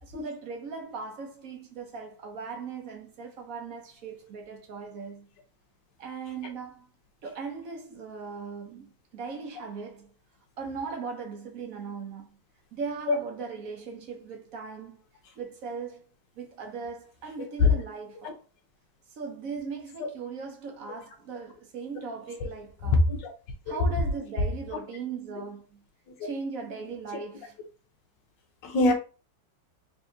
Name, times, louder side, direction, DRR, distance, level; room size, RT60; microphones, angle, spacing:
voice 1, 0.0-5.3 6.0-6.9 7.2-10.1 10.6-12.4 12.7-15.0 15.4-16.0 16.4-18.4 19.1-23.0 23.7-25.8 26.2-27.6, right 5 dB, 60° right, 1.0 m, -38 dB
voice 2, 22.9-23.3 23.7-23.8 26.2-26.3 28.6-28.9, left 3 dB, 70° left, 1.5 m, -22 dB
3.8 x 3.6 x 2.7 m
omnidirectional pair, 2.2 m